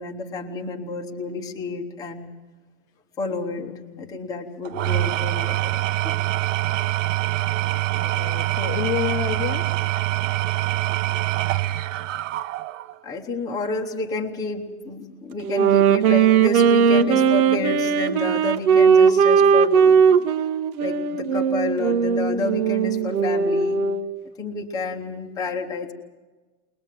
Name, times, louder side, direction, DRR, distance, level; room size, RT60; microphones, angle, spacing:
voice 1, 0.0-2.3 3.2-3.7 4.0-6.2 13.0-20.2 20.8-23.8 24.4-25.9, left 3 dB, 10° left, 0 dB, 1.0 m, -30 dB
voice 2, 3.6-4.4 8.0-9.8, left 12 dB, 30° left, 0 dB, 0.8 m, -30 dB
Engine / Tools, 4.6-13.0, right 16 dB, 60° right, 0.6 m, -24 dB
Wind instrument woodwind instrument, 15.4-24.1, right 6 dB, 75° right, 1.3 m, -18 dB
21.5 x 20.5 x 7.5 m, 1.3 s
supercardioid pair, 170°, 43 cm